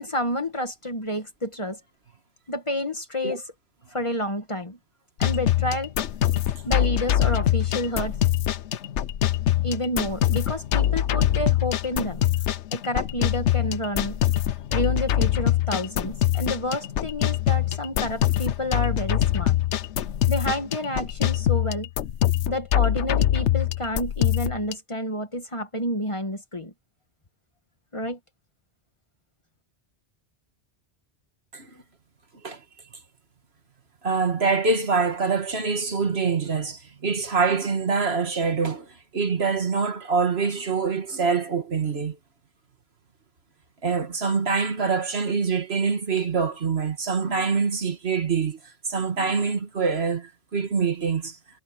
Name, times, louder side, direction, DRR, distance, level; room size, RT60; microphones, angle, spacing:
voice 1, 0.0-1.8 2.5-3.4 3.9-4.8 5.2-5.9 6.6-8.2 9.6-12.2 12.7-14.2 14.7-19.6 20.3-21.9 22.5-26.7 27.9-28.2, equal, 25° left, 1.7 m, -29 dB
sound 1, 5.2-24.7, left 11 dB, 85° left, 1.1 m, -24 dB
voice 2, 34.0-42.2 43.8-51.4, right 5 dB, 65° right, 2.0 m, -25 dB
omnidirectional pair, 1.1 m